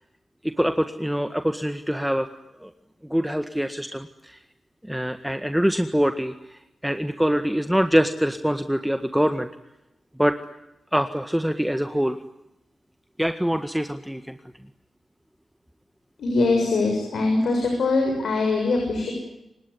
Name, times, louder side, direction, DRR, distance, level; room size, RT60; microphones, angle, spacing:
voice 1, 0.4-2.3 2.6-2.7 3.1-4.4 4.8-9.5 10.2-10.4 10.9-12.2 13.2-14.3, equal, 5° right, 8 dB, 1.7 m, -24 dB
voice 2, 16.2-19.1, left 3 dB, 80° left, 2 dB, 7.2 m, -22 dB
29.0 x 17.5 x 10.0 m, 0.91 s
supercardioid pair, 45°, 0 cm